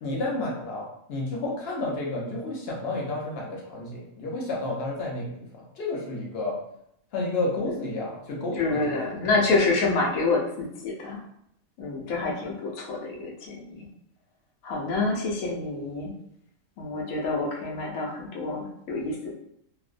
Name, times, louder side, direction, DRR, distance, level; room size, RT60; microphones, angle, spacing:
voice 1, 0.0-5.4 5.8-6.5 7.1-8.8 9.1-9.4, left 2 dB, 55° left, -3 dB, 0.7 m, -31 dB
voice 2, 8.6-11.2 11.8-13.9 14.6-16.1 16.8-19.3, left 3 dB, 80° left, -1 dB, 1.0 m, -27 dB
2.5 x 2.0 x 2.4 m, 0.73 s
omnidirectional pair, 1.5 m